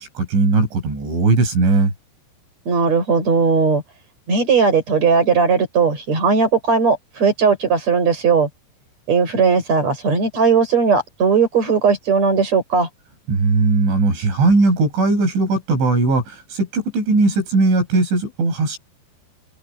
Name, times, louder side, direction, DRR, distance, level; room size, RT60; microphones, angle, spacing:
voice 1, 0.0-1.9 13.3-18.8, right 3 dB, 85° right, 9.9 m, -18 dB
voice 2, 2.7-3.8 4.3-8.5 9.1-12.9, right 5 dB, 35° right, 7.2 m, -17 dB
open air
omnidirectional pair, 5.2 m